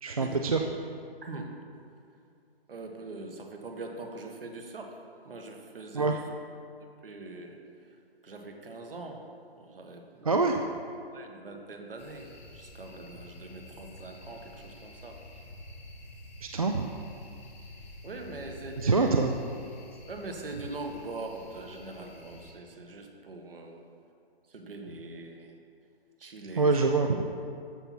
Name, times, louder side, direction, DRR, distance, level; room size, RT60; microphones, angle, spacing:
voice 1, 0.0-0.6 5.9-6.2 10.2-10.6 16.5-16.9 18.8-19.3 26.6-27.2, right 3 dB, 35° right, 3 dB, 0.4 m, -25 dB
voice 2, 1.2-1.6 2.7-5.0 5.2-6.2 6.8-7.6 8.2-9.2 9.6-10.4 11.1-15.2 18.0-19.2 20.1-23.8 24.5-25.6 26.2-26.7, right 2 dB, 60° right, 3 dB, 1.6 m, -42 dB
sound 1, 12.0-22.5, left 1 dB, 15° left, 0.6 m, -49 dB
14.0 x 5.9 x 4.3 m, 2.4 s
hypercardioid pair, 160°, 31 cm